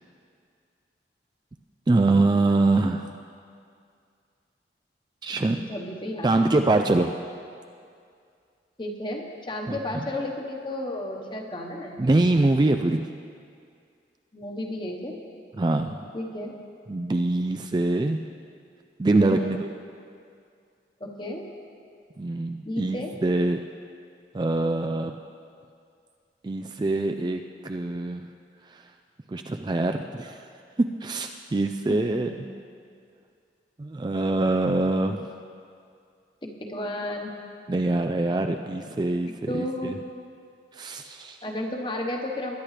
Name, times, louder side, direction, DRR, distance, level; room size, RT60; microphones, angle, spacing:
voice 1, 1.9-3.1 5.2-5.7 6.2-7.2 9.7-10.1 12.0-13.1 15.5-16.1 16.9-18.2 19.0-19.7 22.2-23.6 24.3-25.2 26.4-28.3 28.6-28.9 29.3-30.5 30.8-32.3 33.8-35.3 37.7-40.0 40.7-41.4, right 2 dB, 25° right, 5 dB, 0.3 m, -24 dB
voice 2, 5.6-6.3 6.7-6.8 8.8-12.0 14.3-15.2 16.1-16.5 19.3-19.6 21.0-21.5 22.6-23.1 31.9-32.4 36.4-37.3 39.5-39.9 41.4-42.6, left 1 dB, 25° left, 1 dB, 1.2 m, -33 dB
21.5 x 10.0 x 3.3 m, 2.3 s
head